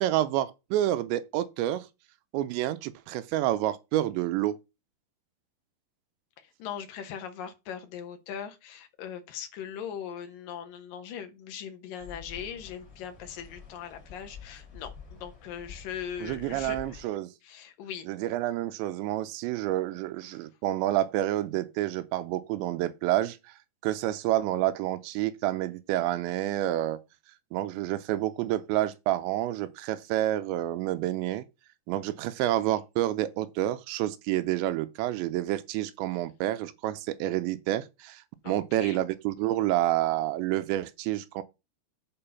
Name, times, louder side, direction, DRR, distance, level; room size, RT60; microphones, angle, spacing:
voice 1, 0.0-1.9 2.3-4.6 16.2-17.3 18.1-23.4 23.8-27.0 27.5-31.5 31.9-41.4, right 14 dB, 90° right, 3.1 m, -29 dB
voice 2, 6.6-17.0 17.4-18.1 38.4-39.1, left 8 dB, 65° left, 2.4 m, -40 dB
sound 1, 12.0-17.0, left 6 dB, 25° left, 3.9 m, -48 dB
8.8 x 4.7 x 5.7 m
omnidirectional pair, 5.0 m